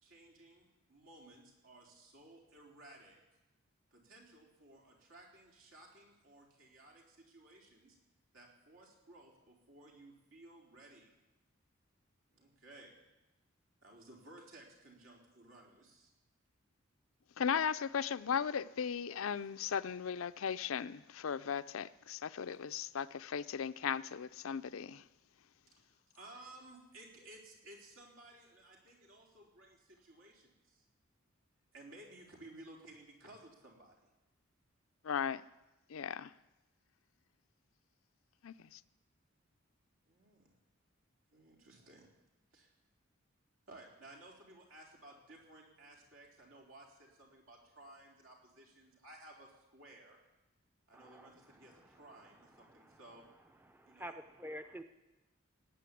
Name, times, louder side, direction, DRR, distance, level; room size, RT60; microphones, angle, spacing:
voice 1, 0.0-3.2 3.9-8.0 8.3-11.1 12.3-12.9 13.8-16.1 22.5-22.6 25.7-30.8 31.7-34.0 40.1-40.4 41.3-42.1 42.5-42.7 43.7-50.2 50.9-53.2 53.9-54.1, right 1 dB, 80° right, 4.1 m, -57 dB
voice 2, 17.4-25.0 35.0-35.4 35.9-36.3 38.4-38.8, left 7 dB, 85° left, 0.5 m, -37 dB
voice 3, 50.9-51.3 53.7-54.8, equal, 10° right, 0.5 m, -47 dB
18.5 x 9.2 x 8.4 m
head